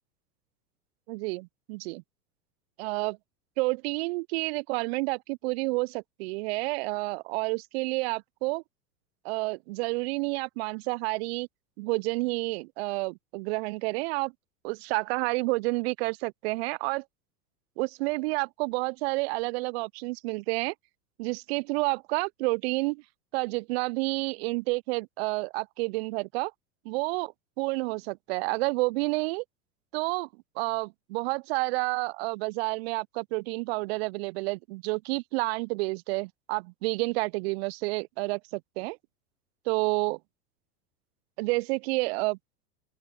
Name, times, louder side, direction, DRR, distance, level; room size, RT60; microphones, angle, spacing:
voice 1, 1.1-2.0 2.8-3.2 3.6-8.6 9.2-11.5 11.8-14.3 14.6-17.0 17.8-20.7 21.2-23.0 23.3-26.5 26.9-27.3 27.6-29.4 29.9-30.3 30.6-39.0 39.7-40.2 41.4-42.4, right 25 dB, 45° right, 0.5 m, -30 dB
open air
hypercardioid pair, 90°, 47 cm